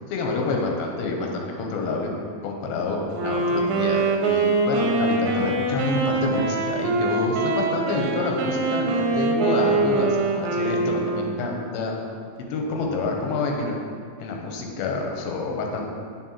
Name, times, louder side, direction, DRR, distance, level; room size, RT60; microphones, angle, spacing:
voice 1, 0.1-2.1 2.4-12.0 12.5-13.8 14.2-15.9, left 3 dB, 90° left, 1 dB, 2.5 m, -28 dB
Wind instrument woodwind instrument, 3.1-11.5, right 3 dB, 80° right, 2.3 m, -23 dB
7.3 x 4.5 x 2.9 m, 2.2 s
omnidirectional pair, 4.3 m